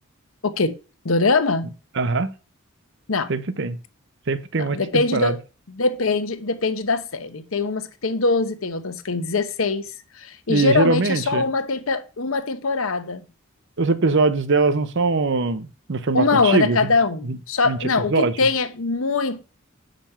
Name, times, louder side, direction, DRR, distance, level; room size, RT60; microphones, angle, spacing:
voice 1, 0.4-0.7 1.0-1.7 3.1-3.3 4.6-5.4 5.7-13.3 16.1-19.4, left 3 dB, 75° left, 0.9 m, -22 dB
voice 2, 2.0-2.3 3.3-3.8 4.3-5.4 10.5-11.5 13.8-16.8 17.3-17.4 17.7-17.8 18.1-18.3, right 3 dB, 60° right, 0.7 m, -21 dB
7.1 x 5.2 x 5.7 m
head